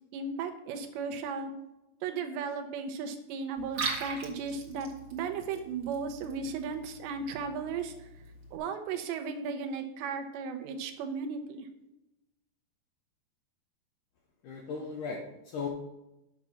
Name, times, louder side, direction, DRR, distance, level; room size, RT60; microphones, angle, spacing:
voice 1, 0.1-1.5 2.0-8.1 8.5-11.7, right 5 dB, 85° right, 6 dB, 3.2 m, -35 dB
Liquid, 3.6-8.6, right 4 dB, 55° right, 1.1 m, -41 dB
voice 2, 14.4-15.7, left 5 dB, 75° left, 1 dB, 1.9 m, -37 dB
9.0 x 6.0 x 7.0 m, 0.92 s
omnidirectional pair, 4.9 m